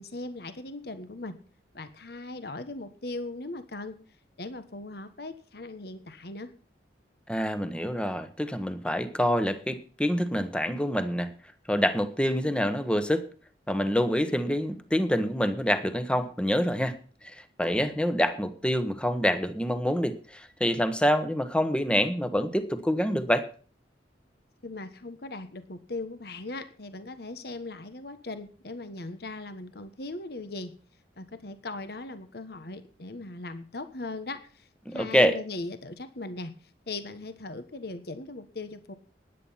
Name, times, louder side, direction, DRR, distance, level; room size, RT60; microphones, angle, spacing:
voice 1, 0.0-1.4 1.7-4.0 4.4-6.5 24.6-30.7 31.2-36.5 36.9-38.9, left 2 dB, 60° left, 10 dB, 1.4 m, -39 dB
voice 2, 7.3-11.3 11.7-13.2 13.7-17.0 17.2-23.5 34.9-35.3, equal, 5° left, 9 dB, 1.2 m, -26 dB
14.5 x 10.5 x 5.7 m, 0.42 s
head